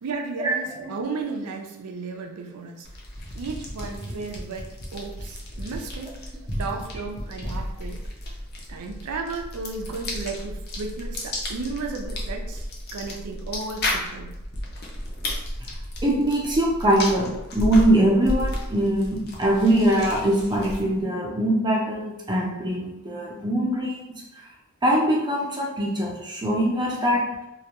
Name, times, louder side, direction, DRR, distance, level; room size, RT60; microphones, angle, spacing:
voice 1, 0.0-2.9 3.3-8.0 8.7-14.4, right 4 dB, 80° right, 3 dB, 0.4 m, -34 dB
sound 1, 2.8-21.0, left 1 dB, 45° left, 0.5 m, -33 dB
voice 2, 16.0-24.0 24.8-27.2, right 1 dB, 20° right, -3 dB, 0.5 m, -22 dB
2.3 x 2.1 x 2.8 m, 0.90 s
head